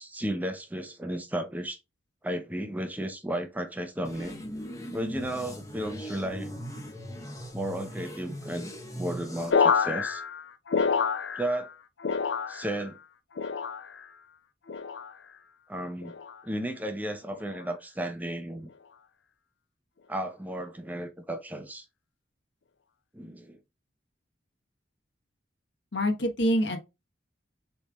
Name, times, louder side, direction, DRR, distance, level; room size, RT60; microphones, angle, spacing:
voice 1, 0.0-1.8 2.2-4.4 4.9-6.6 7.5-10.2 11.4-11.7 12.5-13.0 15.7-16.1 16.4-18.7 20.1-21.9 23.1-23.6, right 1 dB, 10° right, 0.7 m, -34 dB
sound 1, 4.0-9.5, equal, 20° left, 1.1 m, -39 dB
sound 2, 9.5-11.7 12.0-12.9 13.4-14.1 14.7-15.1 16.0-16.4 17.3-17.6, left 5 dB, 80° left, 0.5 m, -28 dB
voice 2, 25.9-26.8, equal, 65° left, 1.2 m, -25 dB
6.9 x 3.4 x 2.3 m
head